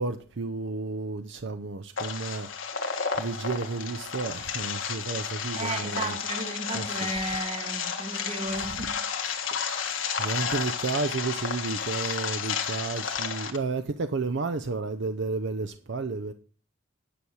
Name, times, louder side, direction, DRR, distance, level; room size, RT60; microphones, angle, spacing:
voice 1, 0.0-2.5 3.1-6.2 6.7-7.1 8.7-8.8 9.5-9.6 10.2-16.3, right 3 dB, 60° right, 0.6 m, -32 dB
sound 1, 2.0-13.6, left 6 dB, 80° left, 1.7 m, -32 dB
voice 2, 5.5-9.0, right 2 dB, 35° right, 1.6 m, -34 dB
10.0 x 6.2 x 6.5 m
head